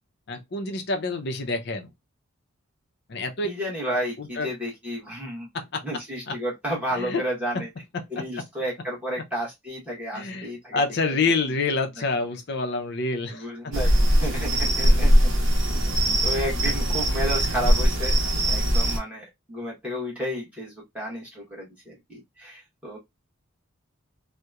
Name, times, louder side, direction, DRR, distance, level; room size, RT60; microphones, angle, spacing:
voice 1, 0.3-1.9 3.1-3.5 4.2-4.5 5.5-5.8 6.3-6.4 6.9-7.2 7.5-7.6 7.9-8.4 10.1-13.7 17.6-17.7, left 3 dB, 50° left, 0.5 m, -28 dB
voice 2, 3.4-5.5 5.8-7.7 8.1-10.8 13.3-13.9 14.2-15.1 16.2-18.2 18.4-23.0, equal, 5° right, 1.0 m, -32 dB
sound 1, 13.7-19.0, equal, 60° right, 0.9 m, -21 dB
2.8 x 2.1 x 2.3 m
head